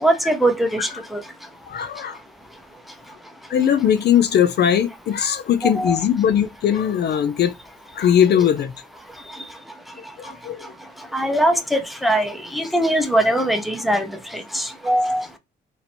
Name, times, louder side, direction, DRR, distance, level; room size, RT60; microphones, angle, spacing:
voice 1, 0.0-1.2 5.8-6.0 11.1-14.1 14.5-15.2, right 1 dB, ahead, 0.7 m, -21 dB
voice 2, 1.7-2.2 3.5-7.5 7.9-8.7 10.2-10.7, left 9 dB, 55° left, 0.4 m, -19 dB
2.8 x 2.7 x 4.2 m
cardioid pair, 90°, 20 cm